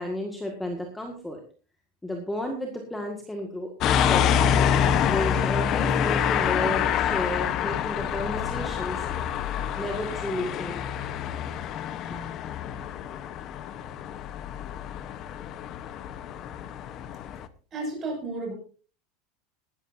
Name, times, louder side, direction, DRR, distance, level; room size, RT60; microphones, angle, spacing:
voice 1, 0.0-1.4 2.0-4.6 5.1-9.1 9.8-10.8 12.1-12.2, left 1 dB, 5° left, 3 dB, 1.8 m, -32 dB
sound 1, 3.8-17.5, left 8 dB, 30° left, 0.9 m, -27 dB
voice 2, 17.7-18.5, right 2 dB, 20° right, 1 dB, 6.3 m, -32 dB
19.5 x 13.5 x 2.7 m, 0.37 s
supercardioid pair, 175°, 0 cm